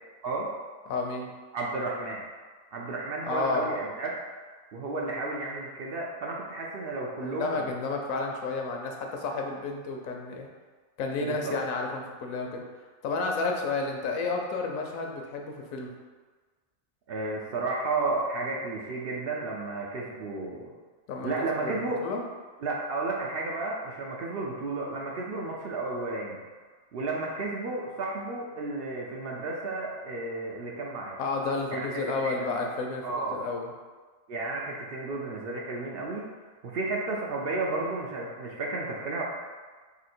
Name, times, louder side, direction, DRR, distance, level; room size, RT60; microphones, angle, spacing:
voice 1, 0.9-1.3 3.2-3.7 7.2-10.5 11.0-12.6 13.0-15.9 21.1-22.2 31.2-33.7, left 3 dB, 90° left, 1 dB, 1.0 m, -31 dB
voice 2, 1.5-2.2 2.7-4.1 4.7-7.7 11.2-11.5 17.1-20.7 21.2-22.0 22.6-26.4 26.9-31.2 31.7-32.5 33.0-33.4 34.3-36.2 36.6-39.2, right 3 dB, 65° right, -2 dB, 0.6 m, -32 dB
2.9 x 2.7 x 4.2 m, 1.4 s
omnidirectional pair, 1.4 m